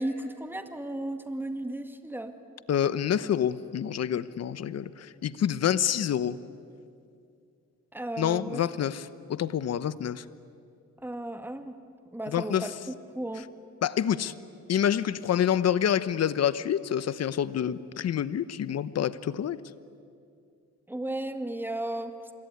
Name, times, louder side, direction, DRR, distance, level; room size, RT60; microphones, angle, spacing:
voice 1, 0.0-2.4 7.9-8.6 11.0-11.7 12.1-13.5 20.9-22.3, right 1 dB, 5° right, 8 dB, 2.0 m, -35 dB
voice 2, 2.7-6.4 8.2-10.2 12.3-12.7 13.8-14.3 14.7-19.6, left 9 dB, 55° left, 15 dB, 1.1 m, -27 dB
26.5 x 22.5 x 9.6 m, 2.4 s
cardioid pair, 90°, 30 cm